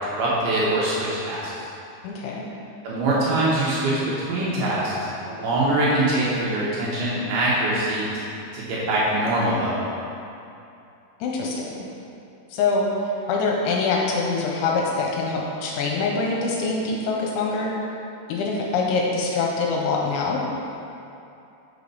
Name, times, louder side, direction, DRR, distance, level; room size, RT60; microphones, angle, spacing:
voice 1, 0.0-1.7 2.8-4.0 4.3-4.9 5.2-8.1 8.5-9.8, right 1 dB, 75° right, -7 dB, 2.4 m, -23 dB
voice 2, 2.0-2.5 11.2-11.8 12.5-12.9 13.3-17.7 18.3-20.4, left 4 dB, 85° left, -2 dB, 3.0 m, -24 dB
6.6 x 5.1 x 5.4 m, 2.7 s
omnidirectional pair, 5.6 m